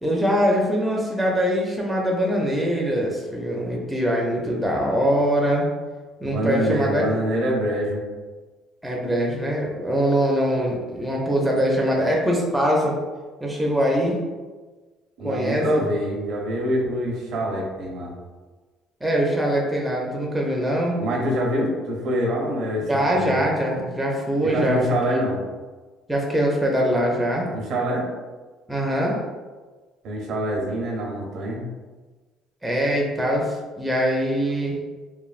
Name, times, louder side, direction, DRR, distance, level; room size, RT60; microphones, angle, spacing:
voice 1, 0.0-5.7 6.2-7.0 8.8-13.0 13.4-14.2 15.2-15.7 19.0-21.0 22.9-24.8 25.1-25.2 26.1-27.5 28.7-29.2 32.6-34.8, equal, 5° right, -3 dB, 0.4 m, -23 dB
voice 2, 6.2-8.0 15.2-18.1 21.0-23.5 24.4-25.4 27.5-28.1 30.0-31.6, equal, 65° right, -1 dB, 0.7 m, -25 dB
3.1 x 2.1 x 2.4 m, 1.3 s
cardioid pair, 130°, 0 cm